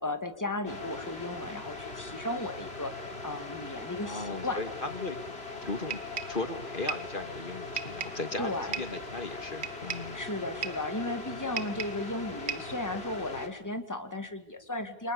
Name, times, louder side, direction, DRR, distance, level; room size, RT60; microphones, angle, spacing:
voice 1, 0.0-4.6 8.4-8.7 10.1-15.1, left 2 dB, 15° left, 7 dB, 2.4 m, -35 dB
sound 1, 0.6-13.5, left 3 dB, 75° left, 3.8 m, -41 dB
voice 2, 4.0-5.2 5.6-6.0 6.3-10.2, left 2 dB, 55° left, 8 dB, 2.2 m, -37 dB
sound 2, 5.9-6.4 6.9-7.1 7.8-8.2 8.7-9.0 9.6-10.1 10.6-10.9 11.6-12.1 12.5-12.8, right 6 dB, 85° right, 1.8 m, -36 dB
30.0 x 27.5 x 6.9 m, 0.62 s
omnidirectional pair, 1.1 m